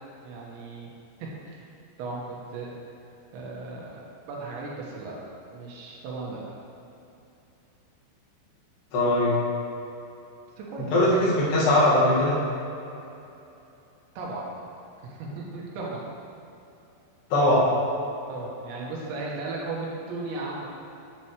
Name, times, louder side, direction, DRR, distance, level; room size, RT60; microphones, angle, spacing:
voice 1, 0.2-0.9 1.2-1.7 2.0-2.7 3.3-5.2 5.5-6.4 10.6-10.9 14.2-14.5 15.0-16.0 17.3-17.5 18.3-20.7, right 3 dB, 85° right, -4 dB, 3.7 m, -36 dB
voice 2, 8.9-9.4 10.8-12.4 17.3-17.7, left 1 dB, 70° left, -7 dB, 3.9 m, -20 dB
11.0 x 7.8 x 3.2 m, 2.8 s
omnidirectional pair, 5.0 m